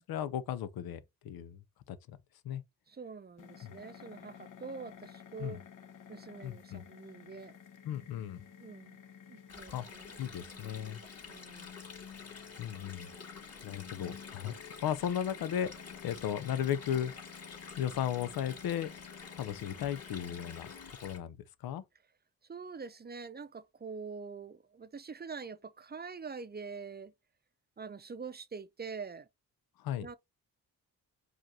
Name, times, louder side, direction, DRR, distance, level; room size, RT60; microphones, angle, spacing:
voice 1, 0.0-1.6 1.9-2.2 2.4-2.6 3.6-3.7 5.4-5.6 6.4-6.8 7.9-8.4 9.7-9.9 10.2-11.0 12.6-13.1 13.6-14.5 14.8-15.7 16.0-17.1 17.8-18.9 19.3-20.7 21.0-21.4 21.6-21.8 29.8-30.1, left 10 dB, 85° left, 0.6 m, -35 dB
voice 2, 2.9-5.6 6.1-7.6 8.6-9.0 9.3-10.2 10.5-10.7 11.3-11.8 22.5-27.1 27.8-29.3 30.0-30.2, right 5 dB, 30° right, 0.6 m, -45 dB
sound 1, 3.4-20.9, left 7 dB, 60° left, 0.8 m, -52 dB
Stream, 9.5-21.2, left 5 dB, 45° left, 2.4 m, -50 dB
5.0 x 2.5 x 4.1 m
cardioid pair, 75°, 35 cm